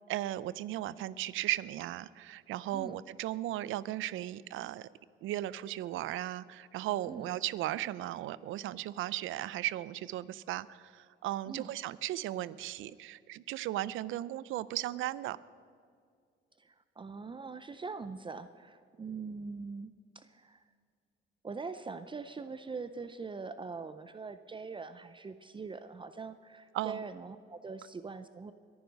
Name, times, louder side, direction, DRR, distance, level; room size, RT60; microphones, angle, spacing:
voice 1, 0.1-4.9 5.2-15.4 26.7-27.0, right 14 dB, 85° right, 19 dB, 0.5 m, -36 dB
voice 2, 16.6-20.6 21.4-28.5, right 4 dB, 25° right, 11 dB, 0.5 m, -43 dB
22.0 x 9.6 x 5.3 m, 2.2 s
cardioid pair, 90°, 20 cm